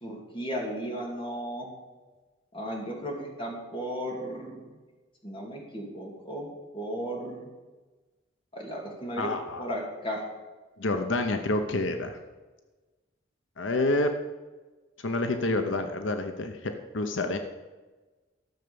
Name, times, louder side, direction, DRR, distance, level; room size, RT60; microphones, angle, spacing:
voice 1, 0.0-1.7 2.5-4.7 5.2-6.5 6.7-7.5 8.5-9.3 9.6-10.2, equal, 25° left, 0 dB, 2.5 m, -35 dB
voice 2, 9.2-9.6 10.8-12.2 13.6-14.1 15.0-17.4, left 2 dB, 90° left, 7 dB, 0.9 m, -28 dB
13.0 x 6.8 x 7.0 m, 1.2 s
head